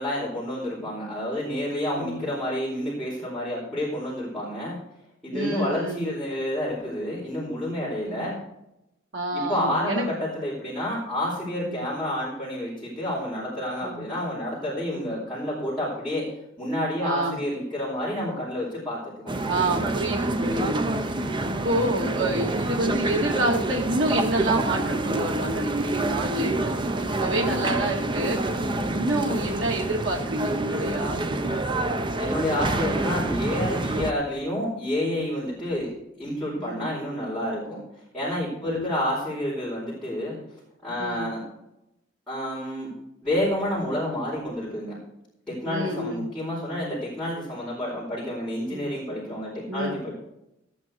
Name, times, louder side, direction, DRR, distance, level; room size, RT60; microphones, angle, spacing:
voice 1, 0.0-4.8 5.2-8.4 9.3-16.3 16.6-19.4 21.1-21.6 28.5-29.1 32.1-35.9 36.2-37.8 38.1-40.4 40.8-41.4 42.3-42.9 43.2-45.0 45.5-50.1, left 1 dB, 5° left, -9 dB, 4.4 m, -29 dB
voice 2, 5.3-6.1 8.0-8.3 9.1-10.1 11.6-11.8 13.8-14.0 14.9-15.1 17.0-17.4 19.4-21.0 21.5-28.4 28.9-31.6 36.6-36.9 38.6-38.8 41.0-41.3 45.7-46.3 48.7-48.9 49.7-50.0, right 1 dB, 80° right, -1 dB, 2.0 m, -28 dB
sound 1, 19.3-34.1, right 2 dB, 25° right, 0.7 m, -27 dB
15.5 x 8.7 x 4.5 m, 0.84 s
head